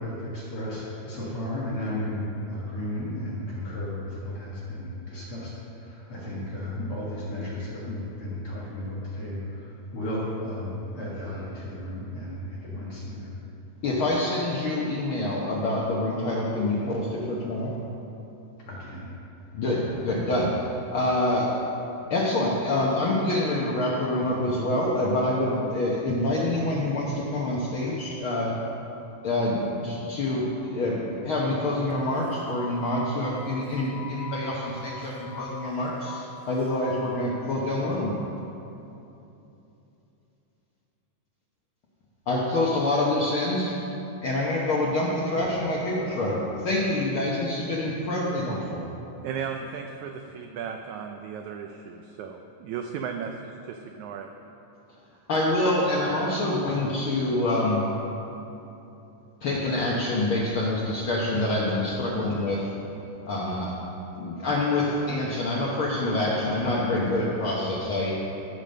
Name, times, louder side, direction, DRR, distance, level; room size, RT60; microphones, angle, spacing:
voice 1, 0.0-13.3 18.6-19.1, left 1 dB, 50° left, -6 dB, 2.2 m, -34 dB
voice 2, 13.8-17.7 19.5-20.5 20.9-21.5 22.1-28.5 29.2-38.1 42.3-43.8 44.2-48.8 55.3-57.8 59.4-62.6 63.3-63.7 64.2-68.1, left 1 dB, 80° left, -4 dB, 1.1 m, -26 dB
sound 1, 31.9-37.2, left 8 dB, 65° left, 1.8 m, -42 dB
voice 3, 49.2-54.3, right 7 dB, 80° right, 4 dB, 1.7 m, -35 dB
15.0 x 5.2 x 6.5 m, 2.9 s
omnidirectional pair, 3.9 m